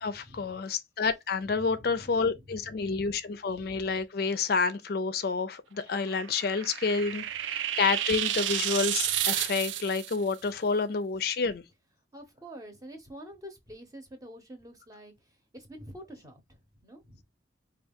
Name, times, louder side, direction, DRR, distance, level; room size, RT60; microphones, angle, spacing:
voice 1, 0.0-11.6, left 4 dB, 55° left, 0.4 m, -29 dB
voice 2, 1.5-2.7 12.1-17.2, equal, 20° right, 0.8 m, -47 dB
sound 1, 6.0-10.2, right 11 dB, 80° right, 0.4 m, -31 dB
4.5 x 2.3 x 3.5 m
head